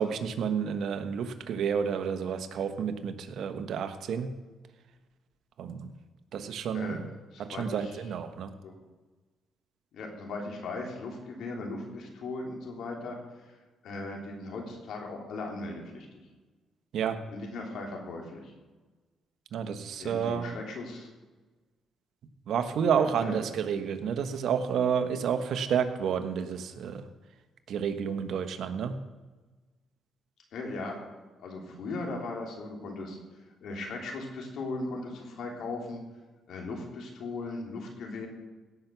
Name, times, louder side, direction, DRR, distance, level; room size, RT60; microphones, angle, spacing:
voice 1, 0.0-4.3 5.6-5.9 6.3-7.0 7.4-8.5 16.9-17.2 19.5-20.5 22.5-27.0 27.7-29.0, right 7 dB, 70° right, 9 dB, 1.2 m, -30 dB
voice 2, 7.2-8.0 8.6-8.7 9.9-13.2 13.4-16.1 17.3-18.5 20.0-21.1 22.9-23.4 30.5-31.0 31.4-33.2 33.6-36.0 36.5-38.3, left 2 dB, 70° left, 1 dB, 3.2 m, -38 dB
17.0 x 6.0 x 6.9 m, 1.3 s
cardioid pair, 90°, 0 cm